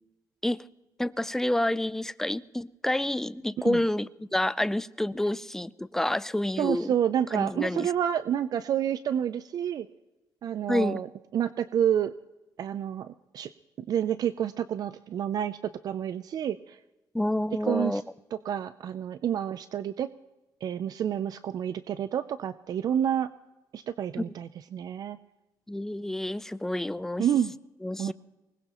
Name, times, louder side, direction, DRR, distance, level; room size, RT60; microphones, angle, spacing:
voice 1, 1.0-6.9 7.3-7.9 10.7-11.0 17.1-18.0 24.2-24.3 25.7-27.3 27.8-28.1, left 1 dB, 5° left, 16 dB, 0.4 m, -28 dB
voice 2, 6.6-9.9 10.4-11.1 11.3-12.1 12.6-13.5 13.8-15.6 15.8-16.8 17.7-18.0 18.5-20.1 20.6-23.3 23.7-25.2 27.2-27.5 28.0-28.1, right 9 dB, 55° right, 14 dB, 0.5 m, -29 dB
24.0 x 20.0 x 3.0 m, 1.1 s
cardioid pair, 120°, 8 cm